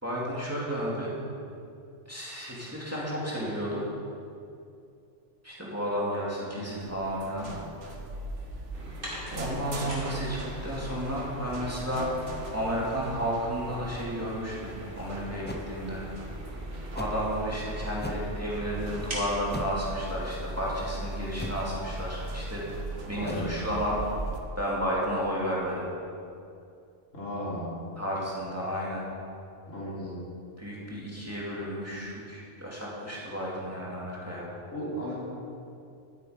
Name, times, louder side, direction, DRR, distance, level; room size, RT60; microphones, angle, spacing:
voice 1, 0.0-1.2 2.1-3.8 5.4-7.5 9.3-12.1 12.5-16.1 16.9-22.6 23.1-24.0 24.6-25.9 28.0-29.0 30.6-34.5, equal, 10° right, -6 dB, 2.4 m, -32 dB
sound 1, 6.8-24.4, right 1 dB, 70° right, 1.4 m, -39 dB
sound 2, 8.7-20.9 21.3-21.4 22.2-22.3 22.5-22.6 23.2-23.3 23.6-23.8, equal, 45° right, 2.8 m, -44 dB
sound 3, 15.4-15.7 17.0-17.2 17.9-18.3 19.5-19.9 21.4-21.7 23.2-23.4, equal, 15° left, 0.5 m, -38 dB
voice 2, 23.1-23.6 27.1-27.8 29.7-30.2 34.7-35.1, equal, 80° left, -7 dB, 3.5 m, -35 dB
12.0 x 9.1 x 5.0 m, 2.5 s
omnidirectional pair, 1.3 m